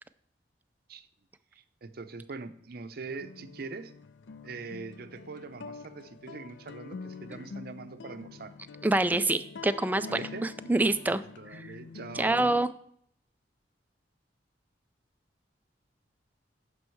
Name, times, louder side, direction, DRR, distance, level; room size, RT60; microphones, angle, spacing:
voice 1, 1.5-3.9 4.4-8.5 10.1-10.5 11.1-12.5, right 4 dB, 55° right, 10 dB, 0.6 m, -42 dB
sound 1, 3.1-12.7, left 4 dB, 90° left, 0.4 m, -45 dB
voice 2, 8.8-11.2 11.5-11.6 12.2-12.7, right 2 dB, 10° right, 11 dB, 0.3 m, -26 dB
9.6 x 5.5 x 4.5 m, 0.65 s
head